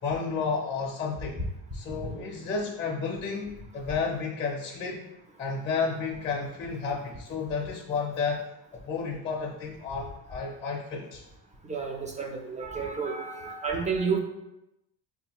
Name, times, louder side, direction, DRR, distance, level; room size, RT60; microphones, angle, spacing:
voice 1, 0.0-1.4 1.7-5.0 5.4-8.5 8.8-11.2, left 5 dB, 25° left, 0 dB, 0.6 m, -31 dB
voice 2, 11.6-14.2, right 5 dB, 15° right, 1 dB, 0.5 m, -31 dB
4.9 x 2.4 x 2.9 m, 0.90 s
cardioid pair, 140°, 44 cm